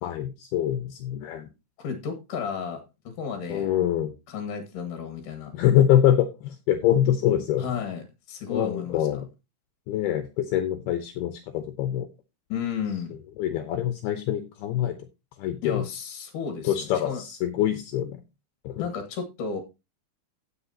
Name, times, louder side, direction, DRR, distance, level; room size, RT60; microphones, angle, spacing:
voice 1, 0.0-1.5 3.5-4.1 5.5-7.8 8.5-9.3 9.9-12.1 13.4-15.0 15.4-15.8 16.6-18.2 18.6-18.9, left 11 dB, 75° left, 7 dB, 2.7 m, -24 dB
voice 2, 1.8-3.7 4.3-5.5 7.6-9.2 12.5-13.2 15.6-17.2 18.8-19.6, left 6 dB, 55° left, 5 dB, 2.8 m, -33 dB
16.0 x 6.4 x 2.8 m, 0.26 s
omnidirectional pair, 4.8 m